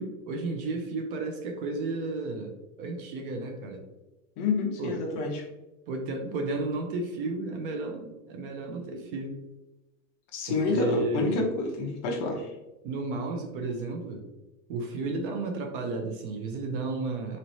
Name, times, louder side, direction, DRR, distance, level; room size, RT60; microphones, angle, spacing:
voice 1, 0.0-3.8 4.8-5.0 5.9-9.4 10.5-11.4 12.8-14.3 14.7-17.4, right 3 dB, 40° right, 3 dB, 0.6 m, -33 dB
voice 2, 4.4-5.4 10.3-12.5, left 3 dB, 35° left, 0 dB, 0.8 m, -28 dB
4.0 x 3.2 x 2.7 m, 1.1 s
supercardioid pair, 160°, 41 cm